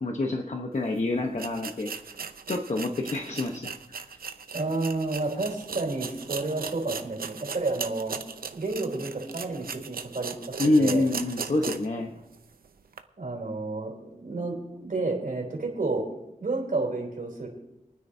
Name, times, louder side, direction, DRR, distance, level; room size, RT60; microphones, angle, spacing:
voice 1, 0.0-1.9 2.5-4.0 10.6-12.1, left 2 dB, 50° left, 2 dB, 1.1 m, -27 dB
sound 1, 0.8-0.9 1.4-12.0 12.3-12.4 12.9-13.0, right 6 dB, 85° right, 0.7 m, -38 dB
voice 2, 4.5-8.2 8.5-11.1 13.2-16.1 16.4-17.5, right 3 dB, 65° right, -1 dB, 3.4 m, -30 dB
28.5 x 9.6 x 2.8 m, 0.88 s
wide cardioid pair, 90°, 15 cm